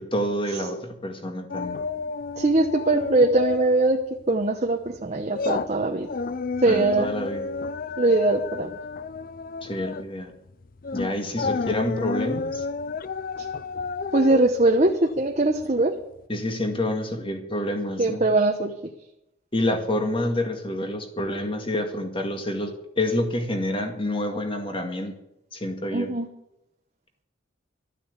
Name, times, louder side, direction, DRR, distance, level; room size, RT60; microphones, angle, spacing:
voice 1, 0.0-1.8 6.7-7.5 9.6-10.3 10.9-12.6 16.3-18.3 19.5-25.1 25.5-26.1, left 1 dB, 25° left, 5 dB, 2.0 m, -28 dB
sound 1, 1.5-3.9 4.2-4.4 4.9-15.8 16.2-16.3, left 4 dB, 45° left, 0.5 m, -31 dB
voice 2, 2.4-4.0 4.3-6.1 6.6-7.1 8.0-8.7 14.1-15.9 18.0-18.7 25.9-26.3, right 2 dB, 35° right, 3 dB, 1.0 m, -21 dB
13.0 x 8.9 x 8.2 m, 0.85 s
head